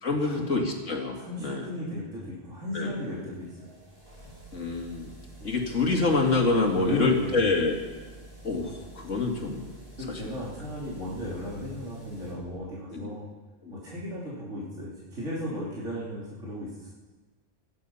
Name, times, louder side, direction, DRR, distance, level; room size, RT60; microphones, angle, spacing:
voice 1, 0.0-1.7 2.7-3.0 4.5-5.1 5.4-7.8 8.4-9.7 10.1-10.2 12.9-13.2 13.6-13.8, left 3 dB, 85° left, 1 dB, 2.7 m, -27 dB
voice 2, 1.2-3.7 5.5-5.6 6.8-7.4 10.0-13.3 13.7-16.9, left 1 dB, 80° right, -7 dB, 3.8 m, -35 dB
sound 1, 2.0-12.3, right 2 dB, 30° right, 4.7 m, -49 dB
18.5 x 13.5 x 5.7 m, 1.3 s
omnidirectional pair, 1.3 m